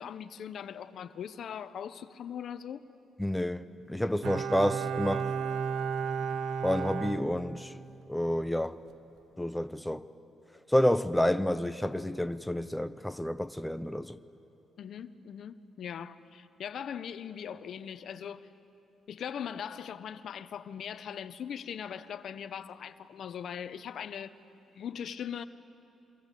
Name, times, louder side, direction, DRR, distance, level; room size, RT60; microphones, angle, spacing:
voice 1, 0.0-2.8 14.8-18.4 19.1-24.4 24.7-25.4, left 8 dB, 65° left, 1.0 m, -40 dB
voice 2, 3.2-5.3 6.6-7.8 8.1-8.8 9.4-10.1 10.7-14.2, left 1 dB, 5° left, 0.8 m, -29 dB
Bowed string instrument, 4.2-8.0 8.3-8.4, right 6 dB, 70° right, 0.9 m, -33 dB
27.0 x 25.5 x 8.4 m
cardioid pair, 90°, 0 cm